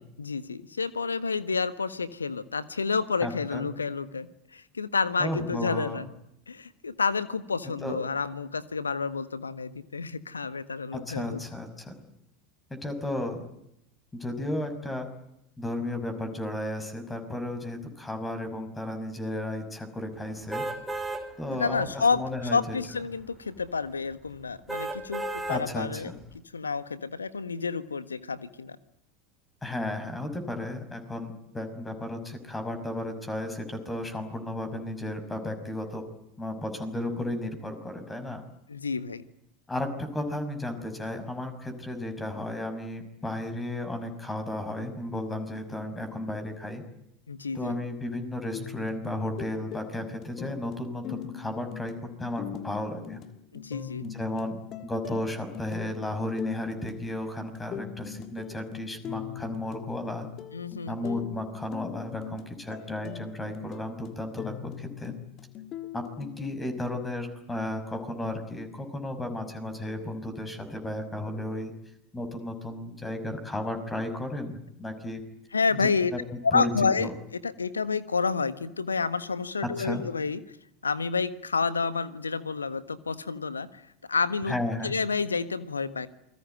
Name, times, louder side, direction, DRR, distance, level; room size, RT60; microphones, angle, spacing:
voice 1, 0.2-6.1 6.5-11.4 21.5-22.2 22.5-26.1 26.5-28.8 38.7-39.2 47.3-47.7 53.5-54.1 60.5-61.3 75.5-76.1 76.4-77.1 77.4-80.4 80.8-84.5 84.8-86.1, left 5 dB, 80° left, 15 dB, 1.4 m, -29 dB
voice 2, 3.2-3.7 5.2-6.0 7.8-8.0 10.9-11.9 12.7-13.4 14.1-15.1 15.6-20.6 21.4-22.8 25.5-26.2 29.6-36.0 36.4-38.4 39.7-46.8 47.5-53.2 54.0-54.6 54.8-60.3 60.9-65.1 65.9-71.7 72.1-75.2 75.8-76.7 77.0-77.1 79.6-80.0 84.5-84.9, left 1 dB, 10° left, 8 dB, 5.7 m, -34 dB
sound 1, 20.5-21.2 21.8-21.9 24.7-25.6 26.2-26.3, right 2 dB, 5° right, 4.7 m, -32 dB
sound 2, 48.5-66.5, left 10 dB, 40° left, 1.7 m, -42 dB
28.5 x 21.5 x 9.2 m, 0.79 s
figure-of-eight pair, 80°, 0 cm